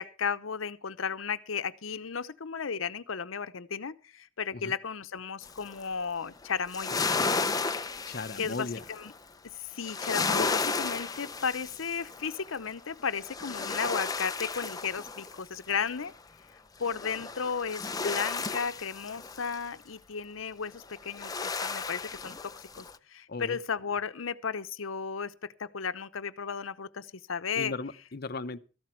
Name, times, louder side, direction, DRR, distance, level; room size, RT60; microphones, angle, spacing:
voice 1, 0.0-7.0 8.4-9.1 9.6-16.1 16.8-27.7, left 6 dB, 85° left, 0.8 m, -34 dB
sound 1, 5.4-5.8 6.4-9.2 9.8-12.6 13.0-16.0 16.8-19.6 20.9-23.0, left 4 dB, 20° left, 0.6 m, -33 dB
voice 2, 8.1-8.8 23.3-23.6 27.6-28.6, left 3 dB, 50° left, 0.8 m, -36 dB
14.0 x 12.0 x 4.5 m
head